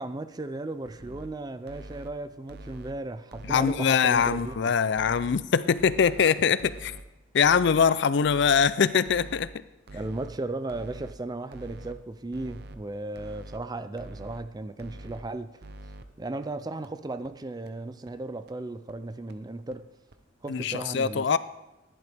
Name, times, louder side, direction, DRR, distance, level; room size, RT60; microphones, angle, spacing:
voice 1, 0.0-4.7 9.9-15.6 16.2-19.9 20.4-21.4, right 2 dB, 20° right, 0.4 m, -36 dB
sound 1, 0.9-1.3 1.7-2.1 2.5-2.9 3.3-3.7 4.1-4.5 4.9-5.4 5.8-6.2 6.6-7.0 7.4-7.8 8.2-8.7 9.1-9.5 9.9-10.3 10.7-11.1 11.5-11.9 12.3-12.8 13.2-13.6 14.0-14.4 14.8-15.2 15.6-16.0 16.4-16.5 16.8-16.9 17.2-17.3 17.7-17.8 18.1-18.2 18.5-18.6 18.9-19.0 19.3-19.4 19.7-19.8 20.1-20.2, right 1 dB, 55° right, 0.7 m, -44 dB
voice 2, 3.5-6.9 7.3-9.5 20.5-21.4, left 6 dB, 60° left, 0.4 m, -23 dB
14.5 x 11.0 x 3.5 m
head